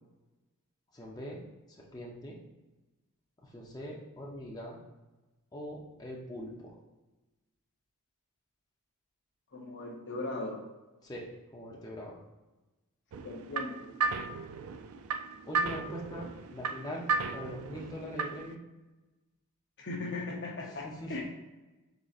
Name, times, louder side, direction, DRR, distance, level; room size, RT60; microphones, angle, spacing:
voice 1, 0.9-1.4 1.9-2.4 3.4-4.8 5.5-6.8 11.0-12.1 15.5-18.6 20.7-21.2, equal, 15° left, -3 dB, 0.6 m, -42 dB
voice 2, 9.5-10.6 13.2-13.9 19.8-21.2, left 2 dB, 55° left, 0 dB, 0.8 m, -38 dB
sound 1, 13.1-18.5, right 4 dB, 70° right, 0.3 m, -35 dB
4.7 x 3.9 x 2.4 m, 1.1 s
head